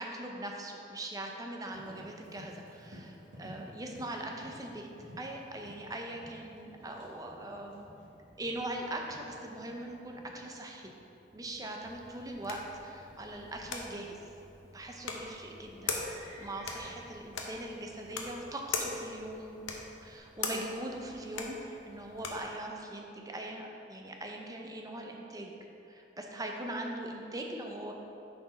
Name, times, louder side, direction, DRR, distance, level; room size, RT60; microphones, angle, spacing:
voice 1, 0.0-4.9 5.2-7.9 8.4-10.9 11.3-14.2 14.7-25.5 25.9-27.9, right 1 dB, 20° right, 1 dB, 0.6 m, -41 dB
Livestock farm animals working animals, 1.7-20.2, equal, 85° right, 1.6 m, -56 dB
sound 1, 11.8-22.5, left 4 dB, 80° left, 0.8 m, -41 dB
6.9 x 4.5 x 5.1 m, 2.8 s
head